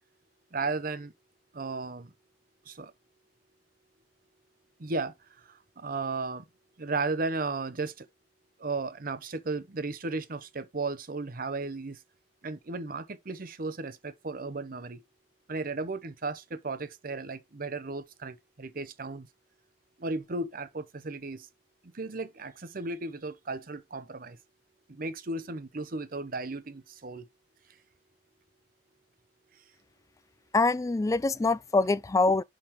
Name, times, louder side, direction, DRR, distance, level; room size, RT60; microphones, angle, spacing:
voice 1, 0.5-1.1 1.5-2.1 2.7-2.9 4.8-5.1 5.8-6.4 6.8-8.1 8.6-12.0 12.4-15.0 15.5-19.3 20.0-21.5 21.9-24.4 24.9-27.3, right 3 dB, 55° right, 0.8 m, -35 dB
voice 2, 30.5-32.4, left 3 dB, 20° left, 0.3 m, -24 dB
10.5 x 3.7 x 3.0 m
head